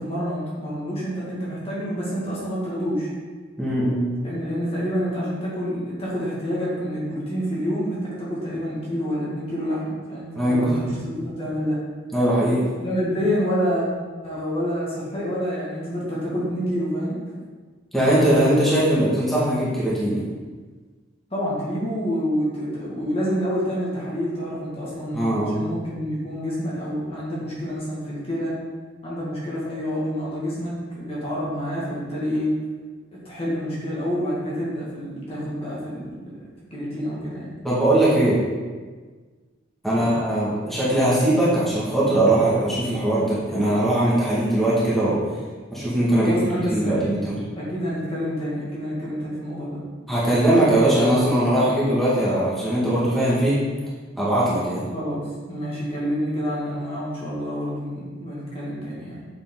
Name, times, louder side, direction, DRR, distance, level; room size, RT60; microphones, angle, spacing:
voice 1, 0.0-3.1 4.2-11.8 12.8-13.9 14.2-17.2 21.3-28.6 29.0-32.5 33.1-36.5 36.7-37.5 39.9-40.1 46.2-47.2 47.6-49.9 54.9-59.3, equal, 30° left, -7 dB, 2.0 m, -28 dB
voice 2, 3.6-4.1 10.4-10.9 12.1-12.6 17.9-20.2 25.1-25.6 37.6-38.4 39.8-45.2 45.7-46.3 46.7-47.4 50.1-53.6 54.2-54.9, right 1 dB, ahead, -9 dB, 2.0 m, -20 dB
7.3 x 6.9 x 3.9 m, 1.4 s
head